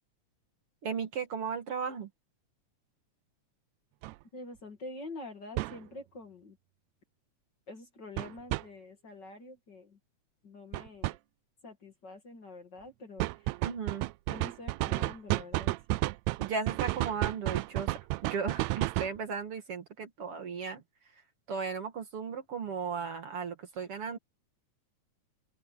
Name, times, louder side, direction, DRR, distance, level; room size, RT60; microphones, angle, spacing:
voice 1, 0.8-2.1 13.6-14.1 16.4-17.9 18.2-20.8 21.5-24.2, right 6 dB, 50° right, 2.5 m, -36 dB
sound 1, 4.0-4.1 5.6-5.8 8.2-8.6 10.7-11.2 13.2-19.2, right 20 dB, 80° right, 1.7 m, -31 dB
voice 2, 4.3-6.6 7.7-10.0 10.4-11.2 11.6-13.6 14.3-15.7, left 2 dB, 40° left, 2.6 m, -46 dB
open air
omnidirectional pair, 3.5 m